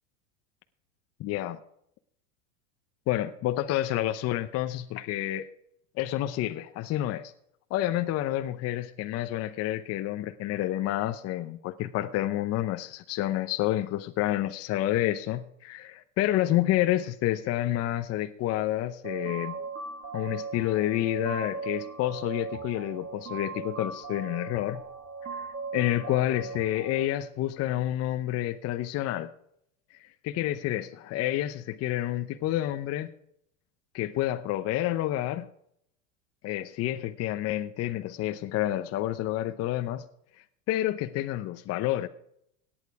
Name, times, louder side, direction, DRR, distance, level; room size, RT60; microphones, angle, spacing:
voice 1, 1.2-1.6 3.1-5.5 6.0-7.3 7.7-19.6 20.1-24.8 25.3-29.3 30.0-33.1 33.9-35.5 36.4-40.0 40.7-42.1, left 14 dB, 35° left, 8 dB, 0.8 m, -29 dB
sound 1, 19.0-27.0, right 4 dB, 30° right, 2.3 m, -38 dB
17.0 x 9.1 x 4.8 m, 0.72 s
supercardioid pair, 120°, 41 cm